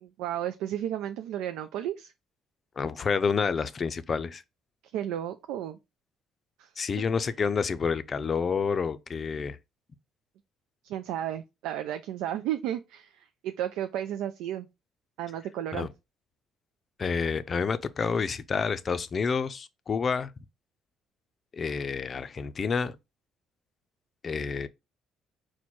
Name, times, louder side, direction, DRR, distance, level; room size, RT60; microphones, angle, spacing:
voice 1, 0.0-2.1 4.9-5.8 6.6-6.7 10.8-14.7 15.2-15.9, right 11 dB, 85° right, 0.3 m, -33 dB
voice 2, 2.8-4.4 6.8-9.6 15.7-15.9 17.0-20.3 21.5-23.0 24.2-24.7, left 5 dB, 40° left, 0.4 m, -29 dB
4.5 x 2.2 x 4.2 m
supercardioid pair, 80°, 0 cm